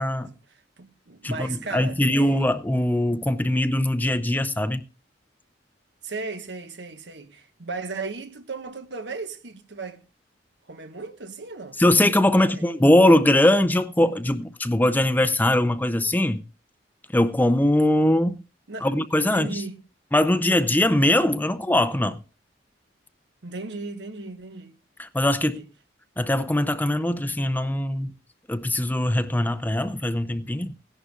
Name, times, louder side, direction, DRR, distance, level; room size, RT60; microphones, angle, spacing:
voice 1, 0.2-2.4 6.0-10.0 10.7-11.8 12.3-12.7 18.7-18.9 19.2-19.8 23.4-24.8 25.4-25.7, right 3 dB, 70° right, 1.3 m, -36 dB
voice 2, 1.2-4.8 11.8-16.4 17.1-18.4 18.8-19.6 20.1-22.2 25.0-25.6 26.2-28.1 28.5-30.7, left 1 dB, 10° left, 0.5 m, -21 dB
16.5 x 11.0 x 2.4 m
head